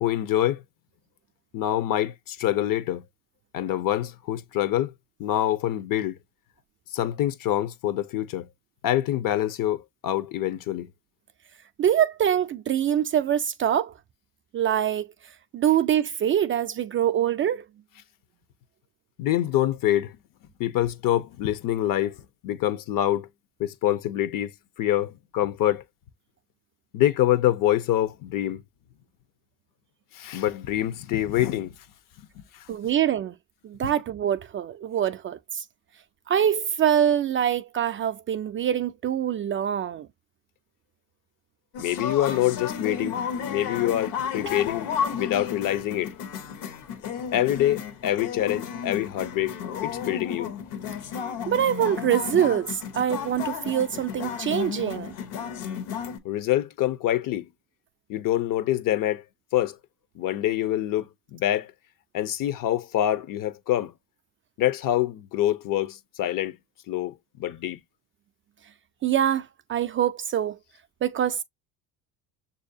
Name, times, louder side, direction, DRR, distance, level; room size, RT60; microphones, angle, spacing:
voice 1, 0.0-0.6 1.5-3.0 3.5-4.9 5.2-6.2 6.9-8.5 8.8-10.9 19.2-20.1 20.6-22.2 22.4-23.3 23.6-24.5 24.8-25.8 26.9-28.6 30.1-31.8 32.2-32.7 41.8-43.2 43.5-46.1 47.3-49.5 49.8-50.5 56.2-57.5 58.1-59.2 59.5-59.8 60.2-61.7 62.1-63.9 64.6-66.6 66.9-67.1 67.4-67.8, left 13 dB, 55° left, 0.7 m, -25 dB
voice 2, 11.8-13.9 14.5-15.1 15.5-17.7 32.7-33.4 33.6-35.6 36.3-40.1 51.5-55.1 69.0-70.6 71.0-71.4, right 10 dB, 30° right, 0.4 m, -24 dB
sound 1, 41.7-56.2, left 7 dB, 70° left, 1.1 m, -33 dB
6.4 x 2.7 x 2.6 m
supercardioid pair, 80°, 41 cm